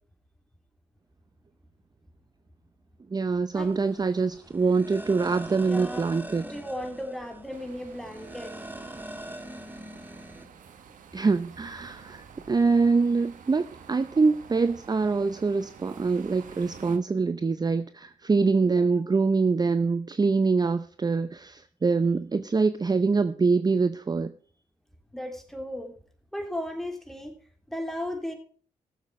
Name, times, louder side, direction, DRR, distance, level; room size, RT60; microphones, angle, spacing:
voice 1, 3.1-6.5 11.1-24.3, right 4 dB, 30° right, 12 dB, 0.7 m, -24 dB
sound 1, 3.5-10.5, right 1 dB, 15° right, 1.5 m, -42 dB
voice 2, 5.6-6.1 6.4-8.5 18.6-19.0 25.1-25.9 26.3-27.3 27.7-28.3, left 1 dB, ahead, 5 dB, 3.1 m, -35 dB
sound 2, 7.5-17.0, right 7 dB, 70° right, 1.4 m, -49 dB
15.5 x 7.3 x 4.7 m, 0.43 s
supercardioid pair, 50°, 14 cm